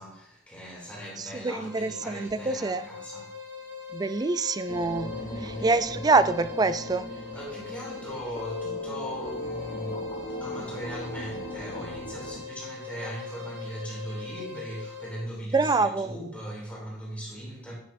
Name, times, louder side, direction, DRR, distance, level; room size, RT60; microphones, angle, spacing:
voice 1, 0.0-3.4 5.1-6.0 7.1-17.7, equal, 5° left, 2.8 m, -39 dB
voice 2, 1.2-2.9 3.9-5.1 5.4-7.1 15.5-16.1, right 3 dB, 20° right, 0.3 m, -25 dB
sound 1, 1.6-15.3, left 5 dB, 60° right, 3.3 m, -42 dB
sound 2, 4.7-12.4, left 1 dB, 35° left, 0.8 m, -38 dB
9.5 x 6.8 x 2.6 m
head